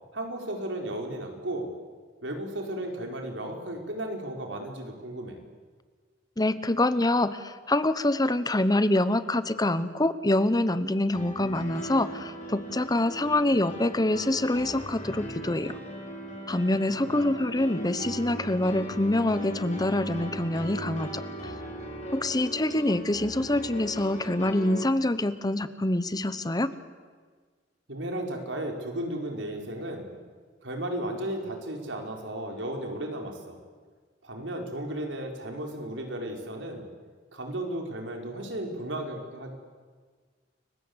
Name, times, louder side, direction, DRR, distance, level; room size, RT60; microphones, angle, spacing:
voice 1, 0.1-1.7 2.2-5.4 17.0-17.4 27.9-30.1 30.6-33.6 34.2-36.9 37.3-39.5, right 1 dB, 90° right, 2 dB, 4.7 m, -34 dB
voice 2, 6.4-15.7 16.5-21.5 22.1-26.7, left 1 dB, 20° left, 13 dB, 1.0 m, -26 dB
Piano, 11.1-24.9, equal, 40° left, 5.0 m, -38 dB
30.0 x 23.0 x 8.1 m, 1.5 s
head